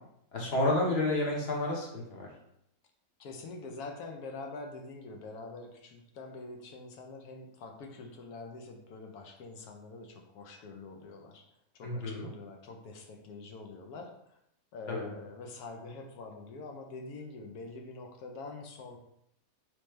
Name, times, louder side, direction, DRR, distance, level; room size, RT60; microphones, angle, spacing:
voice 1, 0.3-2.3 11.8-12.3 14.9-15.1, left 2 dB, 50° left, -1 dB, 1.0 m, -30 dB
voice 2, 3.2-11.4 11.8-14.1 14.7-19.0, left 3 dB, 85° left, 3 dB, 1.1 m, -45 dB
3.3 x 3.1 x 3.1 m, 0.77 s
omnidirectional pair, 1.5 m